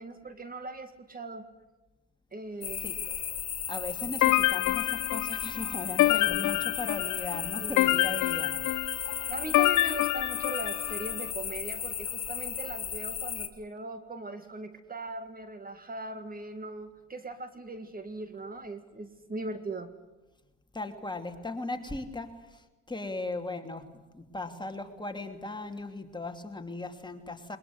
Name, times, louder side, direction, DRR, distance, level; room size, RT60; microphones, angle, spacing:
voice 1, 0.0-1.5 2.3-2.8 7.6-8.1 9.3-19.9, right 2 dB, 30° right, 9 dB, 1.9 m, -40 dB
sound 1, 2.6-13.5, left 9 dB, 55° left, 2.3 m, -35 dB
voice 2, 3.7-8.5 20.7-22.6 22.9-27.6, left 2 dB, 15° left, 5 dB, 2.8 m, -38 dB
sound 2, 4.2-11.1, left 17 dB, 85° left, 0.7 m, -27 dB
21.5 x 21.0 x 9.6 m, 1.1 s
cardioid pair, 90°, 30 cm